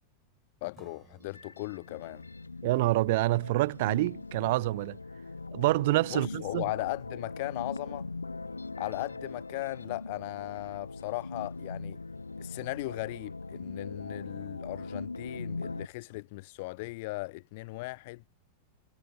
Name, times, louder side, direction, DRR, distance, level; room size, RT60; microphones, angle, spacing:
voice 1, 0.6-2.2 6.1-8.1 8.8-12.0 12.4-18.2, left 23 dB, 50° left, 0.4 m, -37 dB
Acoustic guitar / Strum, 0.7-6.0, right 8 dB, 25° right, 6.7 m, -64 dB
sound 1, 1.2-15.9, left 3 dB, 80° left, 1.3 m, -41 dB
voice 2, 2.6-5.0 5.5-6.6, right 19 dB, 50° right, 0.5 m, -27 dB
figure-of-eight pair, 90°, 0 cm